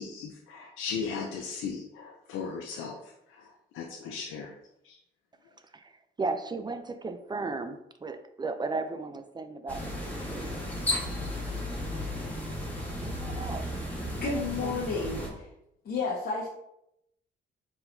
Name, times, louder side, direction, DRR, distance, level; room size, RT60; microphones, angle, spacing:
voice 1, 0.0-4.5 4.8-5.0, left 5 dB, 90° left, 1 dB, 0.5 m, -37 dB
voice 2, 6.2-10.6 13.0-13.7 14.2-14.9, right 3 dB, 20° right, 9 dB, 0.4 m, -36 dB
sound 1, 9.7-15.3, left 1 dB, 10° left, 1.3 m, -34 dB
voice 3, 14.2-15.5 15.8-16.5, left 4 dB, 55° left, -5 dB, 1.1 m, -31 dB
4.4 x 3.9 x 2.6 m, 0.80 s
cardioid pair, 90°, 20 cm